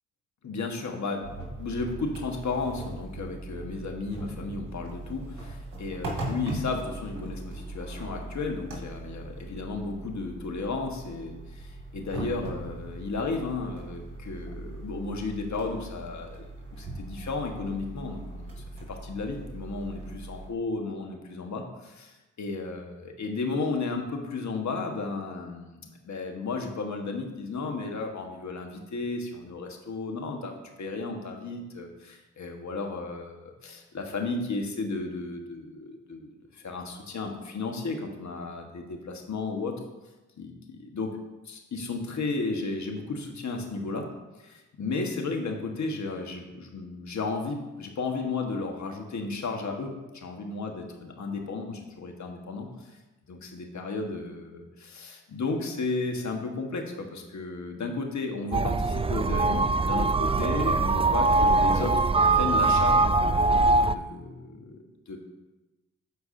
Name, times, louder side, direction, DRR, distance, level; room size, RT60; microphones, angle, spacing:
voice 1, 0.4-1.3 1.6-16.5 16.8-39.7 40.4-41.1 41.4-44.1 44.4-53.0 53.3-61.9 62.3-65.2, left 3 dB, 55° left, 3 dB, 1.5 m, -34 dB
sound 1, 1.2-20.5, right 2 dB, 65° right, 2.1 m, -39 dB
sound 2, 58.5-63.9, right 3 dB, 15° right, 0.4 m, -22 dB
13.5 x 4.6 x 2.7 m, 1.1 s
hypercardioid pair, 40°, 34 cm